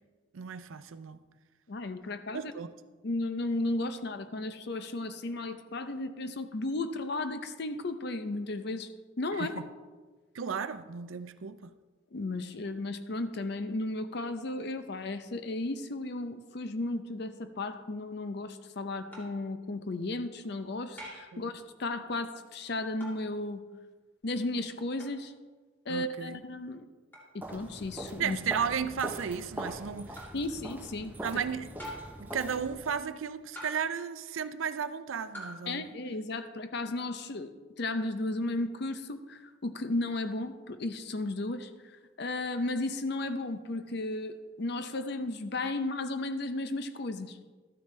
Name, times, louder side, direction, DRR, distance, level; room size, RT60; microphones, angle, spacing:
voice 1, 0.3-1.2 2.3-2.7 9.3-9.7 10.3-11.7 21.3-21.5 25.9-26.4 28.2-30.3 31.2-31.7 32.2-35.9, right 7 dB, 80° right, 0.5 m, -34 dB
voice 2, 1.7-2.5 3.0-8.9 9.2-9.6 12.1-23.6 24.2-25.3 25.9-26.8 27.3-28.4 30.3-31.2 35.7-47.4, left 2 dB, 55° left, 0.6 m, -34 dB
sound 1, 19.1-19.4 21.0-21.4 23.0-23.3 25.0-25.2 27.1-27.3 28.6-28.8 30.2-30.4 31.8-32.3 33.6-34.0 35.3-35.6, equal, 10° left, 2.2 m, -45 dB
Walk footsteps, 27.4-33.0, right 1 dB, 10° right, 0.6 m, -42 dB
12.5 x 9.4 x 3.2 m
head